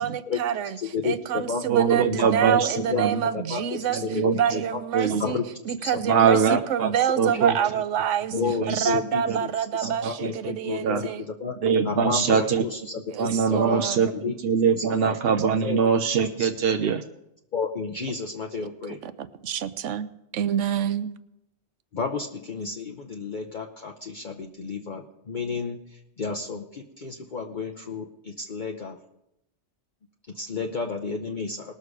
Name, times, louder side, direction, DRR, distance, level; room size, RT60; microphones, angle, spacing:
voice 1, 0.0-4.0 4.3-5.4 5.7-8.3 8.7-11.2 13.1-14.1 19.0-20.1 20.3-21.1, right 8 dB, 90° right, 13 dB, 1.0 m, -27 dB
voice 2, 0.8-1.6 2.1-2.3 2.7-3.0 3.3-3.6 3.9-4.3 5.2-5.5 5.8-6.6 7.6-7.7 8.3-11.1 11.4-11.5 11.8-12.8 13.2-13.8 14.1-14.3 15.0-15.1 15.6-15.8 16.4-16.5 17.5-19.0 21.9-29.0 30.3-31.7, left 5 dB, 45° left, 1 dB, 0.9 m, -31 dB
voice 3, 1.7-3.3 3.9-4.6 4.9-5.2 6.0-7.5 8.3-9.0 9.3-9.4 9.8-10.6 10.8-11.0 11.6-12.6 13.2-17.0, right 6 dB, 60° right, 6 dB, 0.8 m, -23 dB
20.0 x 6.7 x 4.8 m, 0.82 s
omnidirectional pair, 1.2 m